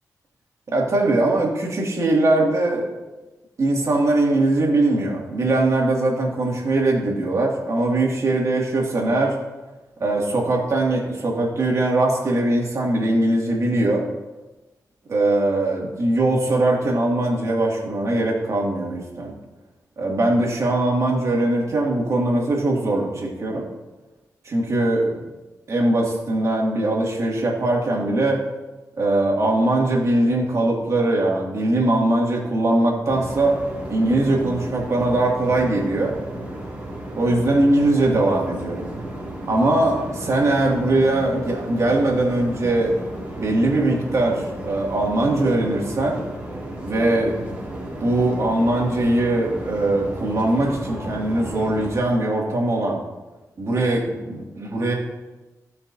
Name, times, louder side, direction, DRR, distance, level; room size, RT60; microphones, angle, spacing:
voice 1, 0.7-2.9 3.6-9.4 10.0-14.0 15.1-19.3 20.0-23.7 24.4-25.2 25.7-28.4 29.0-33.6 33.9-36.1 37.2-38.9 39.5-42.9 43.4-46.2 46.8-47.4 48.0-53.0 53.6-54.9, right 2 dB, 55° right, -2 dB, 2.4 m, -21 dB
sound 1, 33.1-51.9, right 1 dB, 20° right, 2.3 m, -34 dB
16.0 x 5.9 x 2.8 m, 1.1 s
wide cardioid pair, 100°, 6 cm